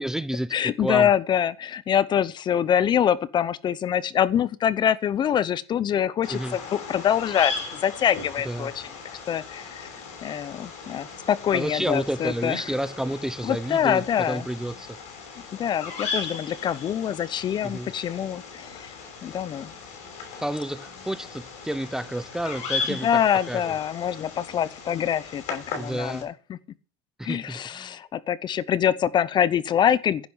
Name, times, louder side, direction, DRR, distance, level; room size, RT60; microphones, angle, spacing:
voice 1, 0.0-1.1 6.3-6.6 8.4-8.7 11.5-15.0 17.6-17.9 20.4-23.8 25.8-26.3 27.2-28.0, right 1 dB, 5° right, 0.7 m, -30 dB
voice 2, 0.5-8.8 9.3-9.9 10.2-12.6 13.4-14.4 15.5-18.9 19.2-19.7 22.9-26.6 27.2-30.3, left 9 dB, 35° left, 0.9 m, -25 dB
Bird vocalization bird call bird song, 6.2-26.2, left 4 dB, 55° left, 6.3 m, -37 dB
10.5 x 9.5 x 7.3 m
supercardioid pair, 115°, 14 cm